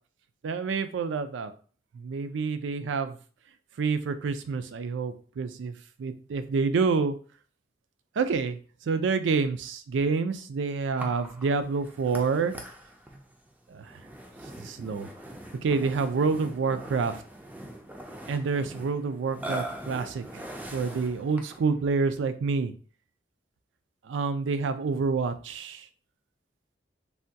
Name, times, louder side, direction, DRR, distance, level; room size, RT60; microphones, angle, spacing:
voice 1, 0.4-1.5 1.9-3.2 3.8-7.2 8.2-8.6 8.9-12.5 13.7-13.9 14.6-15.1 15.6-17.1 18.3-20.4 20.7-22.7 24.0-25.9, right 4 dB, 85° right, 10 dB, 0.4 m, -28 dB
Burping eructation, 11.0-21.7, right 1 dB, 10° right, 0.3 m, -42 dB
3.4 x 2.2 x 2.6 m, 0.40 s
head